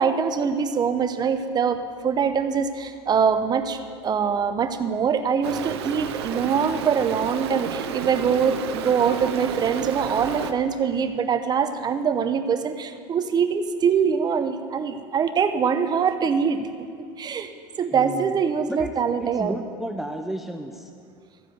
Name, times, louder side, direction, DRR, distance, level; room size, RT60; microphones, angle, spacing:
voice 1, 0.0-16.9 17.2-17.5 17.8-19.6, right 6 dB, 30° right, 9 dB, 0.7 m, -23 dB
Stream, 5.4-10.5, right 8 dB, 90° right, 0.7 m, -32 dB
voice 2, 17.9-18.3 18.7-18.9 19.2-20.9, right 1 dB, ahead, 6 dB, 0.5 m, -32 dB
14.0 x 4.9 x 7.7 m, 2.4 s
supercardioid pair, 100°, 13 cm